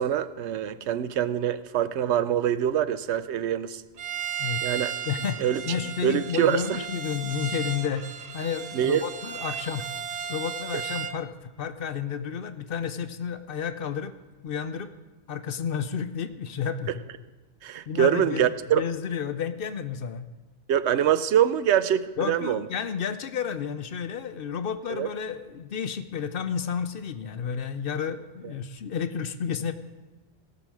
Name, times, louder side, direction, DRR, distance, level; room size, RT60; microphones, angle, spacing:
voice 1, 0.0-3.8 4.6-4.9 5.4-5.6 6.0-6.8 8.7-9.0 17.6-18.8 20.7-22.6 24.9-25.1, right 10 dB, 75° right, 13 dB, 0.9 m, -24 dB
Bowed string instrument, 4.0-11.2, right 8 dB, 50° right, 0.5 m, -35 dB
voice 2, 5.0-8.1 8.3-9.9 10.3-14.1 14.4-14.9 15.3-17.0 17.9-18.5 18.7-20.3 22.2-29.7, left 7 dB, 60° left, 11 dB, 0.7 m, -31 dB
17.5 x 6.0 x 6.2 m, 1.3 s
omnidirectional pair, 1.2 m